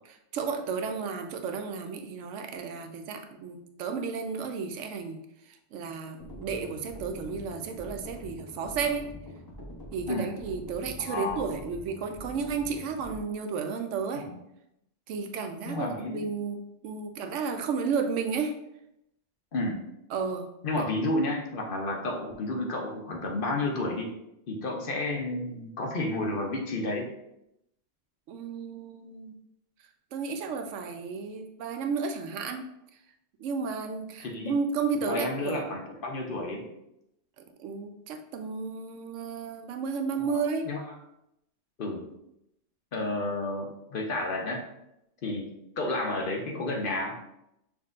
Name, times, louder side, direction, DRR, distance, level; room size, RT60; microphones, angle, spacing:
voice 1, 0.3-5.2 5.7-9.1 9.9-14.3 15.1-18.5 20.1-20.5 20.7-20.8 28.3-29.3 30.1-32.7 33.4-35.7 37.4-40.7, right 5 dB, 85° right, 5 dB, 0.9 m, -33 dB
sound 1, 6.2-13.2, left 1 dB, 20° left, 0.7 m, -44 dB
voice 2, 11.1-11.5 14.2-14.4 15.7-16.3 19.5-19.8 20.6-24.1 24.5-27.1 34.2-34.6 35.1-36.7 40.2-40.9 41.8-42.0 42.9-44.6 45.2-45.5 45.8-47.2, left 2 dB, 55° left, 0 dB, 0.8 m, -31 dB
5.9 x 2.6 x 2.4 m, 0.82 s
omnidirectional pair, 1.2 m